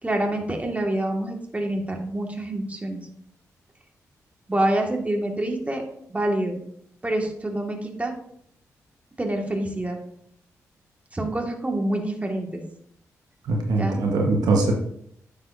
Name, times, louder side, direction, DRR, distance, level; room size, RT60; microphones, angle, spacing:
voice 1, 0.0-3.0 4.5-6.6 7.0-8.1 9.2-10.0 11.1-12.6 13.8-14.0, right 1 dB, 20° right, 2 dB, 1.8 m, -26 dB
voice 2, 13.4-14.7, right 3 dB, 75° right, 1 dB, 1.2 m, -22 dB
9.3 x 6.9 x 2.6 m, 0.69 s
supercardioid pair, 45°, 7 cm